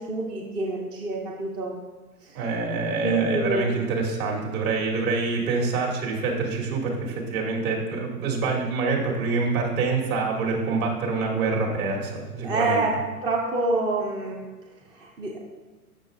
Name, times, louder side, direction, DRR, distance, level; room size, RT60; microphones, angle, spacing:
voice 1, 0.0-1.8 3.0-3.8 12.4-12.9 13.2-14.4 15.0-15.4, right 2 dB, 10° right, 0 dB, 0.4 m, -27 dB
voice 2, 2.3-12.9, right 4 dB, 60° right, -1 dB, 2.5 m, -26 dB
13.5 x 6.2 x 2.5 m, 1.2 s
hypercardioid pair, 120°, 46 cm